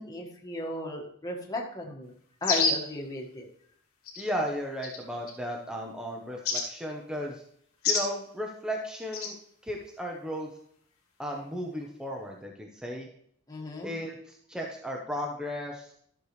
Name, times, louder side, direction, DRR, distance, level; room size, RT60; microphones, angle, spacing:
voice 1, 0.0-2.1 2.4-3.5 13.5-13.9, left 1 dB, 15° left, -1 dB, 1.5 m, -35 dB
sound 1, 2.4-2.9 4.1-4.2 4.8-5.3 6.4-6.7 7.8-8.1 9.1-9.3, left 4 dB, 85° left, 1.8 m, -27 dB
voice 2, 4.2-7.4 7.9-9.3 9.6-10.5 11.2-13.1 13.8-15.9, equal, 5° right, 0 dB, 0.8 m, -35 dB
12.5 x 6.7 x 3.2 m, 0.66 s
head